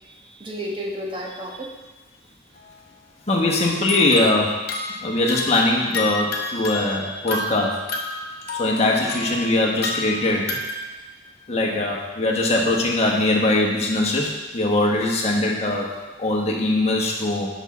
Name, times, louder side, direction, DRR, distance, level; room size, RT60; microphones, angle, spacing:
voice 1, 0.1-1.7 8.7-9.0, equal, 25° right, -1 dB, 1.1 m, -32 dB
sound 1, 2.5-2.7 3.5-10.9, left 3 dB, 50° left, 0.9 m, -31 dB
voice 2, 3.3-4.6 5.0-7.8 8.6-10.5 11.5-15.9 16.2-17.5, left 2 dB, 30° left, -1 dB, 1.2 m, -21 dB
8.1 x 6.2 x 4.1 m, 1.2 s
head